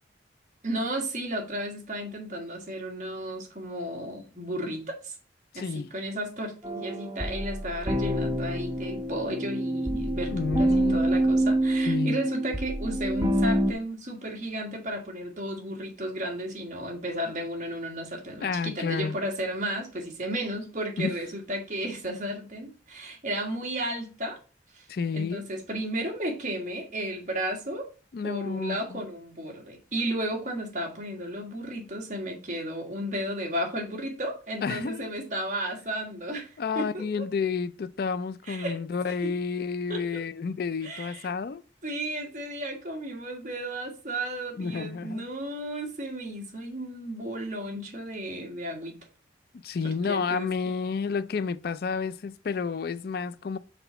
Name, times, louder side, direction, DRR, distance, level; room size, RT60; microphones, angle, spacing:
voice 1, 0.6-5.1 5.5-24.4 24.7-24.8 25.1-27.9 28.2-37.3 38.5-38.8 39.0-39.3 39.9-40.2 40.8-41.3 41.8-49.0 49.8-50.5, right 1 dB, 45° right, 1.7 m, -34 dB
voice 2, 5.5-5.9 10.3-11.2 11.9-12.2 18.4-19.2 21.0-21.1 24.9-25.4 28.1-29.0 34.6-35.1 36.6-41.6 44.6-45.2 49.5-53.6, left 5 dB, 55° left, 0.4 m, -30 dB
sound 1, 6.6-13.7, right 1 dB, 20° right, 0.7 m, -26 dB
5.9 x 4.0 x 5.7 m
head